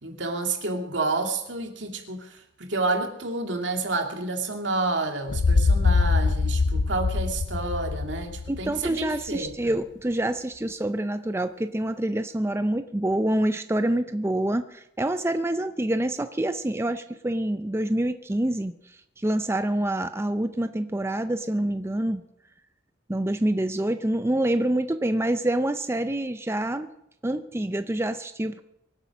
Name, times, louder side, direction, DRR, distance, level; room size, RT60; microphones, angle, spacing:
voice 1, 0.0-9.8, right 3 dB, 75° right, 4 dB, 2.4 m, -29 dB
sound 1, 5.3-9.2, left 4 dB, 65° left, 0.5 m, -23 dB
voice 2, 8.5-18.7 19.2-22.2 23.1-26.9 27.2-28.6, right 1 dB, 15° right, 9 dB, 0.5 m, -26 dB
24.0 x 8.1 x 6.2 m, 0.80 s
head